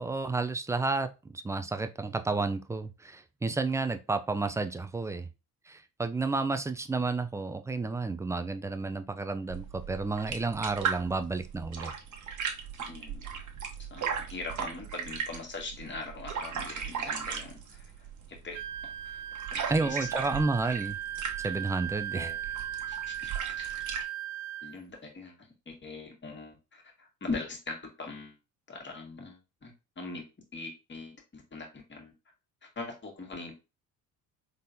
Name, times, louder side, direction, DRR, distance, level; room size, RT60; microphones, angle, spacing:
voice 1, 0.0-5.3 5.7-11.9 19.7-21.0 21.4-22.3, right 3 dB, 10° right, 9 dB, 0.3 m, -31 dB
sound 1, 9.5-24.1, right 7 dB, 45° right, 1.2 m, -37 dB
voice 2, 12.8-13.5 13.9-17.9 18.4-19.2 19.5-20.1 22.1-22.4 22.9-23.3 23.6-23.8 24.6-25.4 25.7-28.4 28.7-30.3 30.5-32.1 32.6-33.5, left 3 dB, 25° left, 1 dB, 1.8 m, -41 dB
Wind instrument woodwind instrument, 18.5-24.8, right 11 dB, 70° right, 0.5 m, -37 dB
4.0 x 3.7 x 2.6 m, 0.28 s
hypercardioid pair, 65°, 42 cm